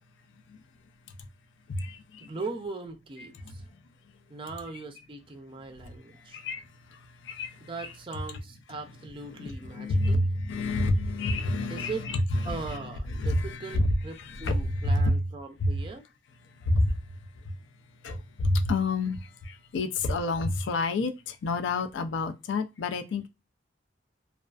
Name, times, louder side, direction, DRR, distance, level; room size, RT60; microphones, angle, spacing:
voice 1, 1.7-2.3 3.2-3.7 6.1-7.9 9.3-12.8 13.1-15.2 15.6-15.8 16.6-17.1 17.3-17.6 18.0-23.3, left 2 dB, 75° left, 0.4 m, -29 dB
voice 2, 2.2-3.6 4.3-6.4 7.6-10.2 11.7-12.1 12.4-16.0, right 3 dB, 30° right, 0.4 m, -39 dB
2.3 x 2.3 x 2.3 m
head